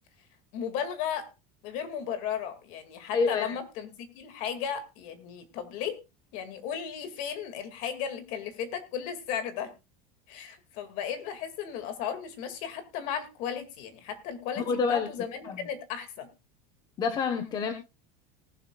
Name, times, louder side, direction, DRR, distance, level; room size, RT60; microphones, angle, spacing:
voice 1, 0.5-1.3 1.6-6.0 6.3-9.7 10.3-16.3, left 8 dB, 45° left, 9 dB, 2.2 m, -35 dB
voice 2, 3.1-3.5 14.7-15.1 15.4-15.6 17.0-17.7, left 5 dB, 25° left, 7 dB, 1.1 m, -27 dB
19.0 x 11.5 x 2.4 m, 0.26 s
cardioid pair, 180°, 18 cm